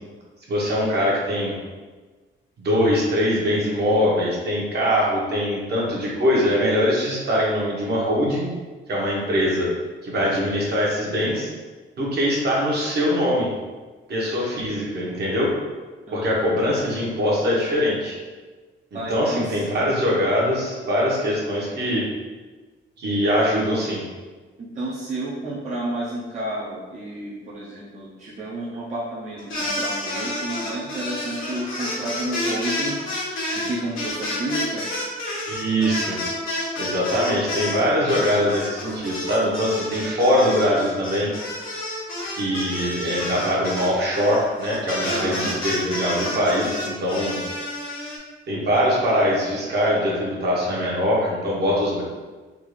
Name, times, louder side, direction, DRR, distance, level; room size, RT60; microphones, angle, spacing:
voice 1, 0.5-1.5 2.6-8.5 8.9-9.7 10.0-11.5 12.0-13.5 14.1-15.5 16.1-18.2 18.9-22.0 23.0-24.0 35.5-36.2 36.8-41.3 42.3-47.4 48.5-52.0, equal, 55° right, -4 dB, 1.0 m, -22 dB
voice 2, 16.1-16.5 18.9-19.7 24.6-33.0 33.5-34.9 37.8-38.2 45.0-45.5, right 1 dB, 35° right, -8 dB, 0.6 m, -31 dB
sound 1, 29.4-37.8 38.1-48.2, left 1 dB, 80° left, 1.1 m, -29 dB
3.6 x 2.4 x 3.1 m, 1.3 s
wide cardioid pair, 150°, 21 cm